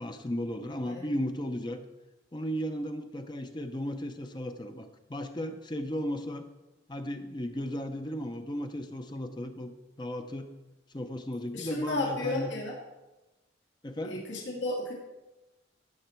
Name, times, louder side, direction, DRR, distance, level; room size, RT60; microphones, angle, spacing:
voice 1, 0.0-1.8 2.3-6.4 6.9-9.7 10.0-10.5 10.9-12.5 13.8-14.2, equal, 25° left, 6 dB, 0.7 m, -35 dB
voice 2, 11.5-12.7 14.0-14.9, left 2 dB, 75° left, -2 dB, 2.4 m, -33 dB
16.0 x 7.1 x 4.5 m, 1.1 s
head